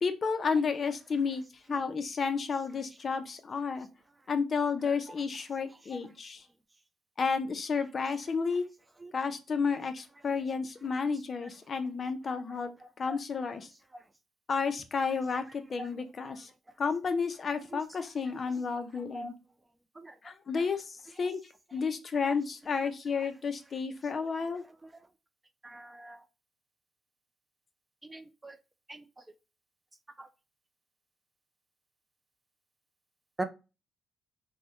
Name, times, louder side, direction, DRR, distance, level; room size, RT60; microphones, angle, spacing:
voice 1, 0.0-1.4 1.7-3.9 4.3-6.4 7.2-8.7 9.1-12.7 13.0-13.7 14.5-16.5 16.8-19.3 20.2-21.4 21.7-24.6, left 5 dB, 40° left, 8 dB, 0.5 m, -31 dB
voice 2, 25.6-26.2 28.0-28.6 28.9-29.0 30.2-30.3 33.4-33.5, right 2 dB, 15° right, 9 dB, 0.4 m, -40 dB
3.4 x 2.1 x 2.8 m, 0.29 s
cardioid pair, 90°, 0 cm